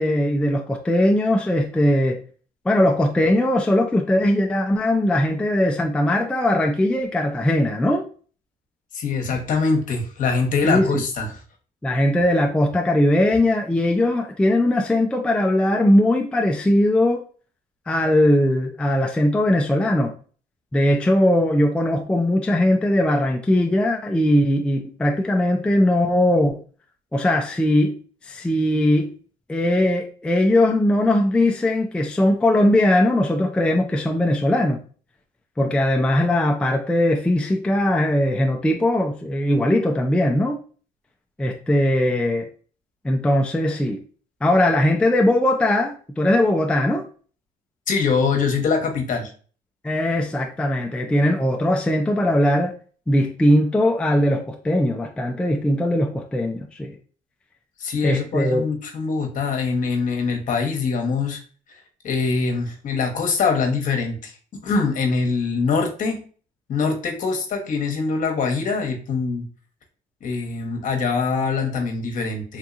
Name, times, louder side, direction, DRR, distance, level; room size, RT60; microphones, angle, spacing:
voice 1, 0.0-2.2 2.7-8.1 10.6-11.0 11.8-17.2 17.9-20.1 20.7-26.6 27.1-28.0 28.2-29.1 29.5-34.8 35.6-40.6 41.4-42.5 43.0-44.0 44.4-47.1 49.8-52.8 53.1-57.0 58.0-58.7, left 1 dB, 5° left, 0.3 m, -20 dB
voice 2, 8.9-11.3 47.9-49.3 57.8-61.4 62.0-64.4 64.6-66.2 66.7-69.4 70.2-72.6, left 4 dB, 50° left, 1.0 m, -23 dB
3.5 x 2.8 x 2.4 m
cardioid pair, 110°, 17 cm